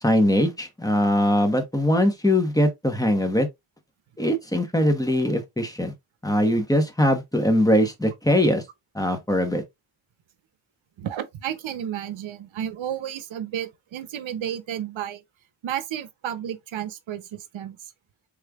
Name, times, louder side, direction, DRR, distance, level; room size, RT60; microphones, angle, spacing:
voice 1, 0.0-3.5 4.2-5.9 6.2-8.6 8.9-9.6, left 1 dB, 10° left, 1.0 m, -21 dB
voice 2, 11.0-15.2 15.6-17.9, right 10 dB, 70° right, 0.7 m, -32 dB
3.6 x 3.2 x 2.3 m
cardioid pair, 70°, 48 cm